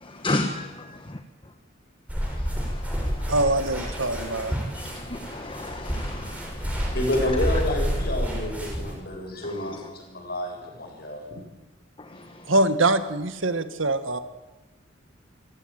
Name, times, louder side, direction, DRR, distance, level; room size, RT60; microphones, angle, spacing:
voice 1, 0.0-0.8 2.2-6.9 9.4-9.8 12.0-12.5, left 2 dB, 25° left, 6 dB, 1.4 m, -35 dB
sound 1, 2.1-8.9, equal, 5° right, 6.5 m, -29 dB
voice 2, 3.3-4.5 12.5-14.2, right 2 dB, 80° right, 10 dB, 1.9 m, -23 dB
voice 3, 6.9-11.2, left 1 dB, 50° left, 2 dB, 7.3 m, -29 dB
27.5 x 15.5 x 9.1 m, 1.1 s
head